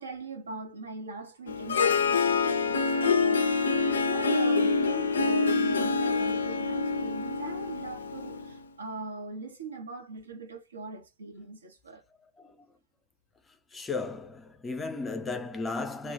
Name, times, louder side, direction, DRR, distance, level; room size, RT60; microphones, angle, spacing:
voice 1, 0.0-12.0, right 3 dB, 75° right, 0.7 m, -41 dB
Harp, 1.5-8.6, left 4 dB, 70° left, 0.3 m, -26 dB
voice 2, 13.7-16.1, left 3 dB, 15° left, 0.5 m, -35 dB
2.2 x 2.1 x 2.7 m
figure-of-eight pair, 90°, 0 cm